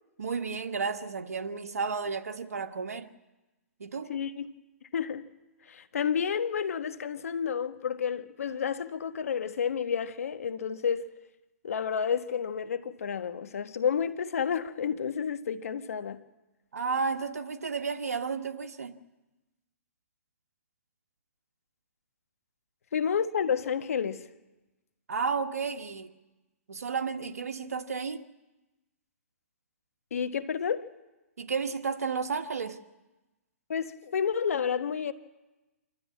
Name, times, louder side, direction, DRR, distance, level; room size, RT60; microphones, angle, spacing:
voice 1, 0.2-3.1 3.8-4.1 16.7-19.0 25.1-26.1 26.7-28.2 31.4-32.8, right 5 dB, 85° right, 1.5 m, -32 dB
voice 2, 4.1-4.5 4.9-5.3 5.6-11.1 11.6-16.2 22.9-24.3 30.1-30.9 33.7-35.1, left 7 dB, 70° left, 1.4 m, -30 dB
26.0 x 12.5 x 8.6 m
hypercardioid pair, 135°, 8 cm